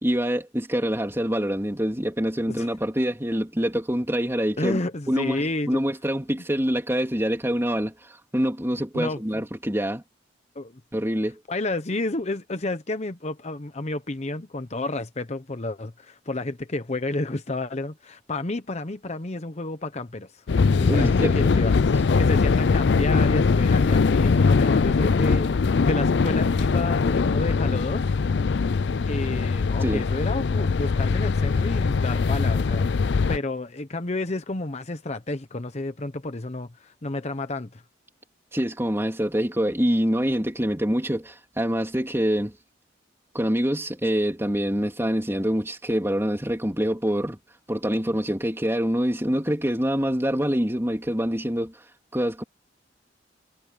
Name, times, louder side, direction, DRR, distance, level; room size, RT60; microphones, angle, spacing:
voice 1, 0.0-4.8 5.1-10.0 10.9-11.4 20.9-21.5 29.8-30.0 38.5-42.5 43.3-47.4 47.7-51.8 52.1-52.4, equal, 15° right, 3.3 m, -25 dB
voice 2, 4.6-5.8 8.9-9.4 10.5-10.8 11.5-20.4 20.8-25.5 25.8-28.0 29.0-37.8, left 2 dB, 35° left, 0.9 m, -30 dB
sound 1, 20.5-33.4, left 4 dB, 65° left, 0.5 m, -21 dB
head